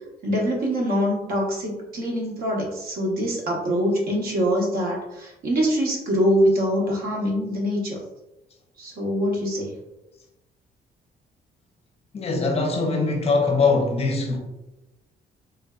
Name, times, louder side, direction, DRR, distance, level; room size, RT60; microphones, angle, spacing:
voice 1, 0.2-8.0 8.8-9.7, equal, 60° right, -2 dB, 0.9 m, -24 dB
voice 2, 12.1-14.4, left 3 dB, 35° left, 2 dB, 0.5 m, -22 dB
3.4 x 2.5 x 2.3 m, 0.95 s
cardioid pair, 160°, 17 cm